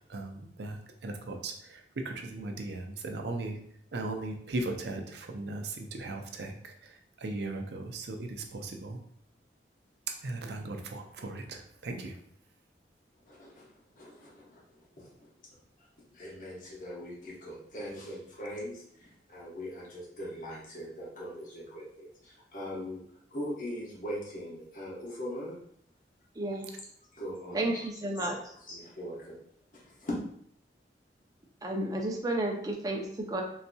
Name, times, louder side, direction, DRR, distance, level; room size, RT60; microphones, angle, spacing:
voice 1, 0.1-3.6 3.9-9.0 10.2-12.2, right 2 dB, 70° right, 4 dB, 0.5 m, -38 dB
voice 2, 13.2-13.7 14.0-15.3 16.1-23.0 23.3-25.6 26.5-26.6 27.1-27.9 28.2-29.4 29.7-30.1, equal, 45° left, -4 dB, 0.9 m, -41 dB
voice 3, 26.4-26.7 27.5-28.4 31.6-33.4, right 1 dB, 20° right, 1 dB, 0.4 m, -32 dB
3.9 x 2.7 x 2.2 m, 0.67 s
head